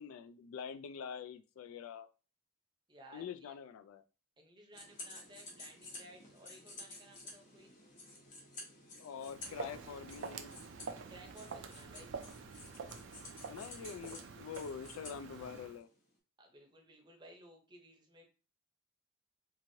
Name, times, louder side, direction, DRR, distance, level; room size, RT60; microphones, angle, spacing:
voice 1, 0.0-2.1 3.1-4.0 9.0-10.5 13.5-15.9, left 7 dB, 90° left, 12 dB, 0.3 m, -45 dB
voice 2, 2.9-3.6 4.4-7.7 11.1-12.1 16.4-18.2, right 1 dB, 20° right, 1 dB, 0.6 m, -57 dB
sound 1, 4.7-16.0, left 2 dB, 40° left, 0.9 m, -53 dB
Walk footsteps, 9.2-15.8, right 5 dB, 65° right, 0.3 m, -47 dB
3.0 x 2.5 x 2.7 m, 0.35 s
head